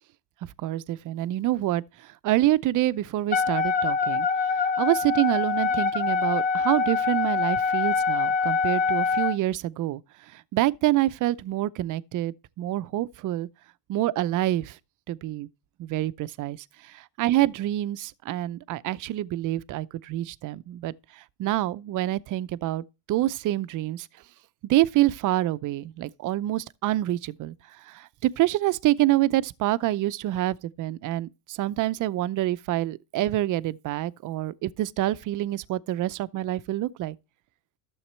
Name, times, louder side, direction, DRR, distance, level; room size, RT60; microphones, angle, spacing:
voice 1, 0.6-4.3 4.5-10.0 10.3-13.5 13.9-14.8 15.1-15.5 15.8-16.6 16.8-24.1 24.7-27.5 27.8-37.2, right 15 dB, 40° right, 0.6 m, -27 dB
Wind instrument woodwind instrument, 3.3-9.4, left 5 dB, 15° left, 0.7 m, -24 dB
12.0 x 7.1 x 3.2 m
supercardioid pair, 95°, 49 cm